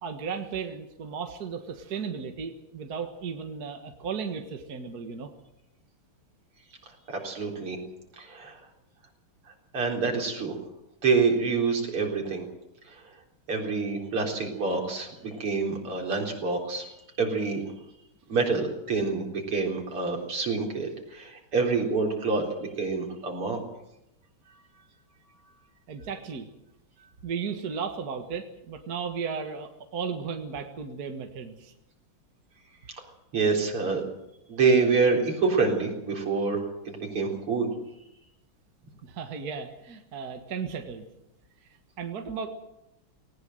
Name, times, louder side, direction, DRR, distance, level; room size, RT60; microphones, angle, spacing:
voice 1, 0.0-5.3 25.9-26.5 27.2-31.7 39.0-41.1 42.0-42.5, right 6 dB, 45° right, 5 dB, 2.0 m, -35 dB
voice 2, 7.1-7.8 8.2-8.5 9.7-10.6 11.0-12.5 13.5-16.9 17.2-17.6 18.3-23.6 33.3-34.0 34.5-37.7, right 4 dB, 80° right, 1 dB, 4.9 m, -27 dB
19.5 x 19.0 x 7.8 m, 0.87 s
omnidirectional pair, 2.4 m